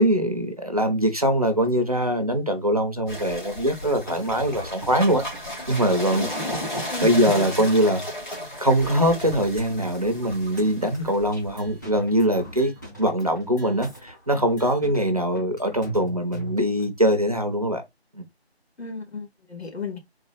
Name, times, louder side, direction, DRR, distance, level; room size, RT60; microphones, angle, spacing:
voice 1, 0.0-5.2 5.7-6.3 7.0-8.0 8.6-12.7 13.0-17.8 18.1-18.2, equal, 35° right, 0.6 m, -22 dB
sound 1, 3.1-12.0, left 1 dB, 45° left, 1.9 m, -34 dB
sound 2, 3.8-16.9, right 1 dB, 20° left, 0.9 m, -41 dB
voice 2, 6.9-7.2 18.8-20.0, left 4 dB, 75° left, 2.3 m, -35 dB
4.0 x 2.3 x 3.9 m
figure-of-eight pair, 170°, 32 cm